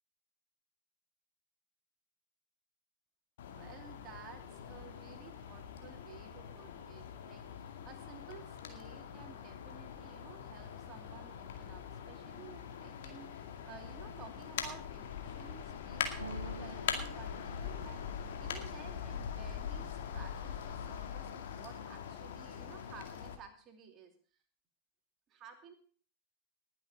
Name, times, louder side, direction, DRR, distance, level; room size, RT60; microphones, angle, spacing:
sound 1, 3.4-23.3, left 8 dB, 60° left, 2.1 m, -43 dB
voice 1, 3.5-24.1 25.3-25.7, right 6 dB, 30° right, 5 dB, 2.7 m, -54 dB
sound 2, 16.2-20.0 20.5-21.1 21.4-22.2, right 3 dB, 75° right, 1.0 m, -51 dB
19.5 x 7.8 x 5.1 m, 0.42 s
figure-of-eight pair, 90°, 0 cm